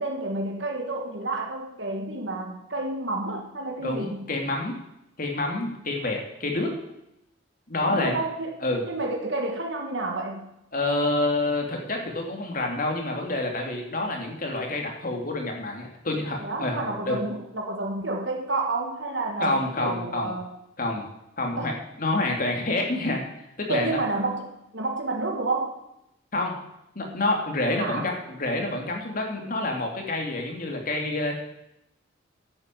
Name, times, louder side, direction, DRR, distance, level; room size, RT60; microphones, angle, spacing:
voice 1, 0.0-4.3 7.8-8.6 8.9-10.5 16.4-20.5 21.6-21.8 23.7-25.8 27.7-28.1, right 2 dB, 65° right, 2 dB, 1.6 m, -30 dB
voice 2, 3.8-4.7 5.2-6.7 7.7-8.2 8.6-8.9 10.7-17.2 19.4-20.3 20.8-21.0 21.4-23.2 23.6-24.0 26.3-26.5 26.9-31.3, left 2 dB, 45° left, 1 dB, 2.8 m, -28 dB
11.0 x 8.5 x 7.8 m, 0.84 s
head